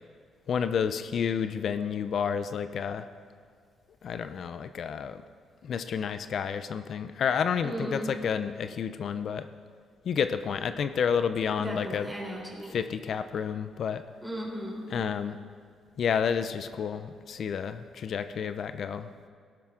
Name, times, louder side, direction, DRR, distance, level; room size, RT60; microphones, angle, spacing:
voice 1, 0.5-3.1 4.0-5.2 5.6-9.5 10.0-12.1 12.7-14.0 14.9-15.4 16.0-19.3, left 7 dB, 60° left, 11 dB, 0.5 m, -30 dB
voice 2, 7.6-8.1 11.6-12.9 14.2-14.9, equal, ahead, -3 dB, 3.7 m, -36 dB
17.0 x 11.5 x 3.7 m, 2.1 s
cardioid pair, 90°, 0 cm